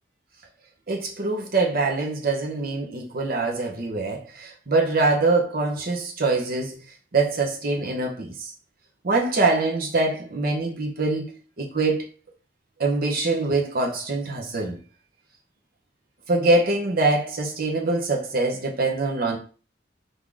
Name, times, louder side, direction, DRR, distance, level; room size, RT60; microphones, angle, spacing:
voice 1, 0.9-6.8 7.1-8.5 9.0-11.3 11.6-12.0 12.8-14.8 16.3-19.4, right 3 dB, 55° right, 0.9 m, -24 dB
3.8 x 2.8 x 4.8 m
head